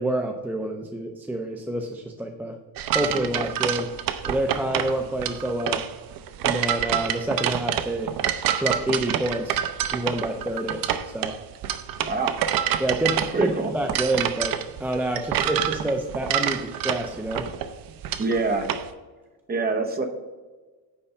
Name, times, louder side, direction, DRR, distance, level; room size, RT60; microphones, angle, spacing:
voice 1, 0.0-2.6 2.9-3.9 4.3-5.8 6.4-8.1 8.6-9.6 9.9-11.4 12.8-17.5, right 1 dB, 5° right, 3 dB, 0.3 m, -28 dB
sound 1, 2.8-18.9, right 10 dB, 55° right, 0.6 m, -27 dB
voice 2, 12.0-12.4 13.3-13.7 18.2-18.7 19.5-20.1, right 3 dB, 20° right, 4 dB, 0.9 m, -25 dB
9.7 x 3.3 x 6.7 m, 1.3 s
cardioid pair, 160°, 42 cm